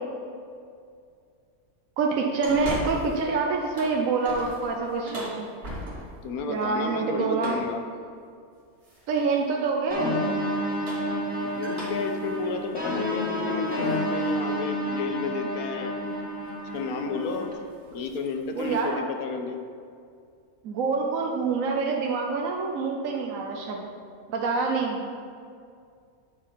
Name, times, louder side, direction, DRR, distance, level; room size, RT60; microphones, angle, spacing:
voice 1, 2.0-5.5 6.5-7.6 9.1-10.2 18.5-19.0 20.6-23.8 24.3-25.2, right 4 dB, 70° right, 0 dB, 1.1 m, -26 dB
sound 1, 2.4-3.3 3.6-6.3 7.4-7.8 8.8-9.3 10.6-14.0 14.5-14.6 16.1-16.3 16.6-16.9 17.2-17.5 17.8-18.9, equal, 50° right, 1.9 m, -39 dB
voice 2, 6.2-7.8 11.4-15.9 16.7-17.6 17.9-19.6, left 4 dB, 80° left, 5 dB, 1.1 m, -32 dB
sound 2, 9.9-17.5, equal, 5° right, 1.6 m, -30 dB
8.8 x 4.5 x 5.1 m, 2.3 s
omnidirectional pair, 1.5 m